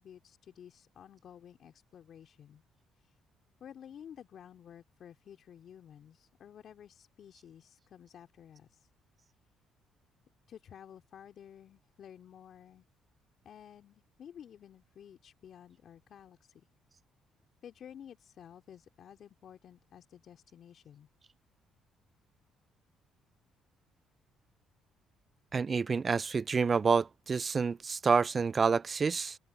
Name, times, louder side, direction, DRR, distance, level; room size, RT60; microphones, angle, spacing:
voice 1, 0.0-2.6 2.9-3.2 3.6-8.9 10.5-12.8 13.4-16.7 17.6-21.1, left 9 dB, 60° left, 3.0 m, -53 dB
voice 2, 25.5-29.4, right 5 dB, 40° right, 0.3 m, -28 dB
open air
supercardioid pair, 65°, 0 cm